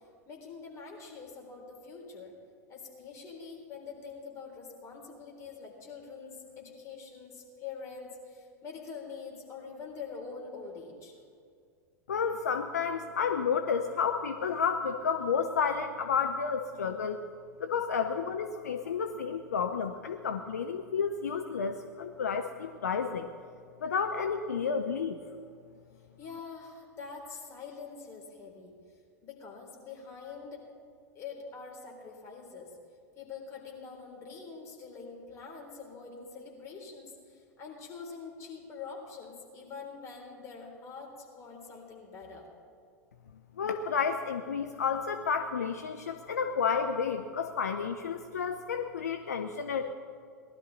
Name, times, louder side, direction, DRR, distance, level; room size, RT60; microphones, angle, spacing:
voice 1, 0.3-2.3 2.7-11.1 26.2-28.7 29.2-30.6 31.1-32.7 33.2-42.4, left 5 dB, 30° left, 0 dB, 3.6 m, -45 dB
voice 2, 12.1-17.2 17.6-23.3 23.8-25.2 43.6-49.9, left 6 dB, 70° left, 7 dB, 0.6 m, -31 dB
19.0 x 12.0 x 4.1 m, 2.2 s
figure-of-eight pair, 90°, 9 cm